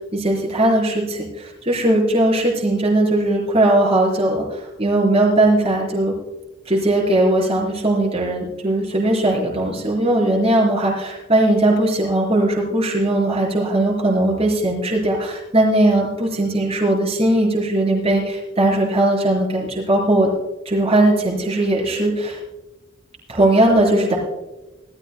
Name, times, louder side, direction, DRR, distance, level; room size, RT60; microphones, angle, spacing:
voice 1, 0.1-6.1 6.6-20.3 20.6-22.4 23.3-24.2, right 1 dB, 30° right, -3 dB, 4.7 m, -19 dB
20.0 x 14.5 x 2.2 m, 1.1 s
head